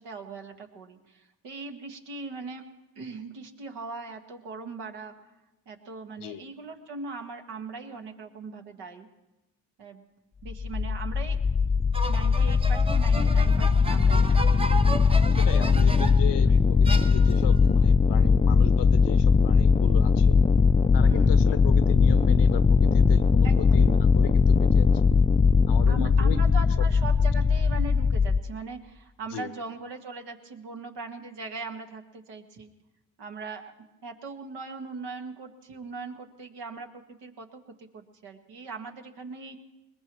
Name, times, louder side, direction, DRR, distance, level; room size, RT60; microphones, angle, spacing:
voice 1, 0.0-2.6 2.9-5.1 5.6-9.1 9.8-10.0 10.4-11.4 12.1-14.5 16.5-16.6 20.8-21.4 23.4-23.8 25.9-32.7 33.2-33.6 34.0-39.6, right 4 dB, 75° right, 4 dB, 1.7 m, -40 dB
sound 1, 10.5-28.4, left 5 dB, 15° left, 0.4 m, -20 dB
Violin Abuse, 11.9-16.3 16.8-17.6, right 2 dB, 15° right, 0.7 m, -35 dB
voice 2, 15.3-20.4 20.9-24.9 25.7-26.6 29.3-29.5, left 9 dB, 80° left, 12 dB, 0.9 m, -36 dB
21.0 x 20.0 x 3.1 m, 1.0 s
supercardioid pair, 60°, 41 cm